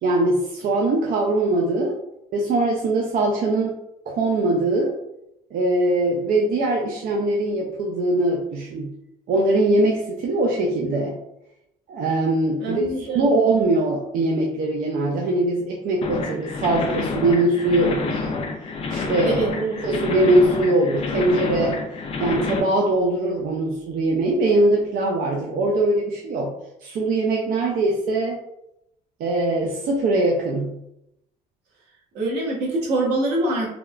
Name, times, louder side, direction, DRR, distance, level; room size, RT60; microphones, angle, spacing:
voice 1, 0.0-2.0 2.3-3.7 4.1-4.9 5.5-8.9 9.3-11.2 11.9-18.3 18.9-19.4 19.8-21.8 22.2-26.5 26.8-28.4 29.2-30.8, right 2 dB, 60° right, -1 dB, 0.4 m, -21 dB
voice 2, 12.6-13.3 19.2-19.8 32.1-33.7, right 2 dB, 80° right, -4 dB, 1.1 m, -24 dB
sound 1, 16.0-22.6, left 4 dB, 35° left, 0.4 m, -28 dB
3.4 x 2.1 x 2.3 m, 0.84 s
cardioid pair, 110°, 17 cm